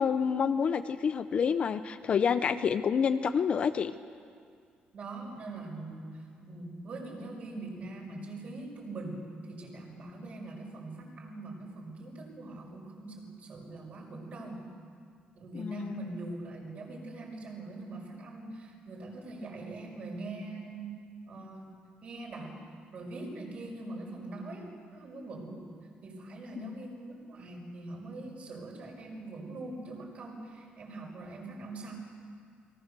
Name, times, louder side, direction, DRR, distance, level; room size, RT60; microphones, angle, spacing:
voice 1, 0.0-3.9 15.5-16.1 26.6-26.7, left 6 dB, 35° left, 10 dB, 0.7 m, -28 dB
voice 2, 4.9-9.2 9.5-14.6 15.4-21.0 21.3-21.7 22.0-22.6 22.9-25.6 26.0-31.9, right 2 dB, 40° right, 0 dB, 5.6 m, -42 dB
29.0 x 22.5 x 6.8 m, 2.2 s
cardioid pair, 170°, 3 cm